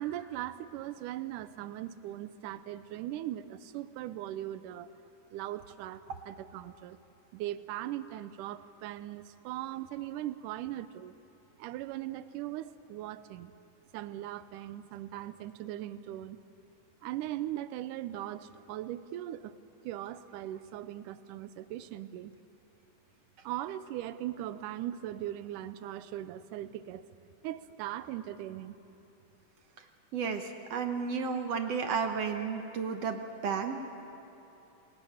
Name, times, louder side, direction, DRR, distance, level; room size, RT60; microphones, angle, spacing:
voice 1, 0.0-4.9 5.3-7.0 7.3-11.2 11.6-13.5 13.9-16.4 17.0-19.6 19.8-22.3 23.4-27.0 27.4-28.8, right 13 dB, 85° right, 14 dB, 2.3 m, -39 dB
voice 2, 30.1-33.8, right 6 dB, 65° right, 6 dB, 1.9 m, -32 dB
28.5 x 20.5 x 8.7 m, 3.0 s
omnidirectional pair, 3.6 m